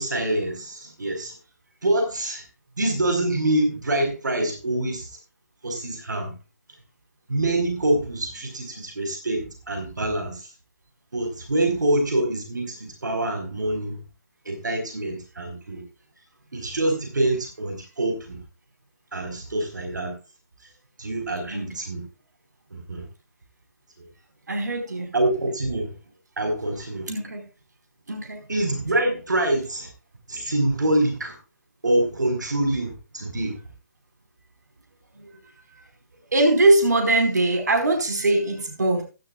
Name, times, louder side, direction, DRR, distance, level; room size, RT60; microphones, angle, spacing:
voice 1, 0.0-1.3 1.8-2.4 2.8-5.1 5.6-6.3 7.3-10.4 11.1-14.0 14.4-15.8 16.5-18.4 19.1-20.1 21.0-22.0 22.7-23.1 25.1-25.9 26.4-27.1 28.5-29.9 30.3-31.4 31.8-33.6, right 1 dB, 85° right, 4.6 m, -25 dB
voice 2, 24.5-25.1 27.1-27.4 28.1-28.4 35.2-35.3 35.7-35.8 36.3-39.0, right 2 dB, 70° right, 4.9 m, -21 dB
15.5 x 12.5 x 2.4 m
hypercardioid pair, 175°, 10 cm